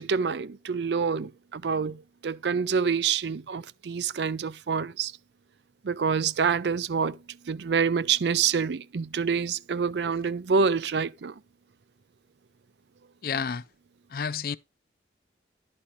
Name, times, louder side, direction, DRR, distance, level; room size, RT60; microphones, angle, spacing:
voice 1, 0.0-5.1 5.8-7.2 7.5-11.3, right 6 dB, 75° right, 0.5 m, -27 dB
voice 2, 13.2-13.6 14.1-14.6, left 6 dB, 55° left, 0.4 m, -30 dB
11.5 x 4.3 x 4.8 m
head